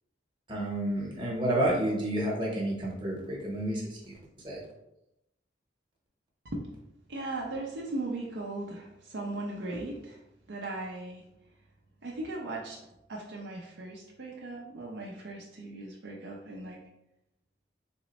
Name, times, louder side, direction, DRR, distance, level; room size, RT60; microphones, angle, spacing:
voice 1, 0.5-4.1 4.4-4.6, right 1 dB, 25° right, -3 dB, 1.0 m, -30 dB
voice 2, 7.1-10.2 10.5-11.2 12.0-12.8 13.1-16.8, right 2 dB, 65° right, -2 dB, 0.5 m, -38 dB
3.6 x 2.1 x 4.0 m, 0.86 s
head